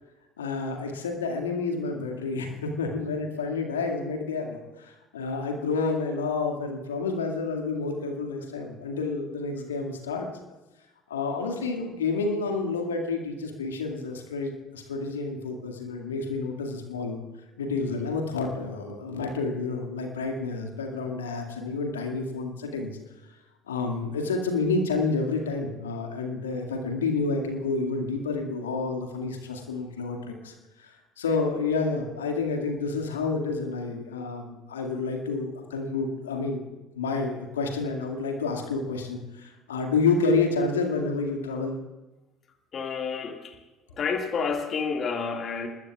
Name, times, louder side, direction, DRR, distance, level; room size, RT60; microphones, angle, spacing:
voice 1, 0.4-10.3 11.1-17.2 17.6-23.0 23.7-36.6 36.9-41.8, left 4 dB, 75° left, 3 dB, 2.1 m, -29 dB
voice 2, 42.7-43.5 44.0-45.7, left 5 dB, 40° left, 4 dB, 2.0 m, -29 dB
24.5 x 20.5 x 2.4 m, 1.1 s
figure-of-eight pair, 60°, 0 cm